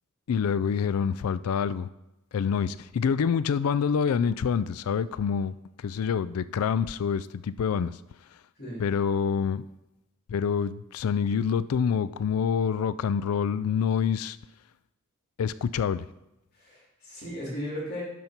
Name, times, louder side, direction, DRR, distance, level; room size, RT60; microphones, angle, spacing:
voice 1, 0.3-1.9 2.3-5.5 5.8-8.0 8.8-9.6 10.3-14.4 15.4-16.1, left 7 dB, 80° left, 0.4 m, -26 dB
voice 2, 16.5-18.0, equal, 50° left, 3.3 m, -36 dB
12.0 x 5.5 x 4.4 m
head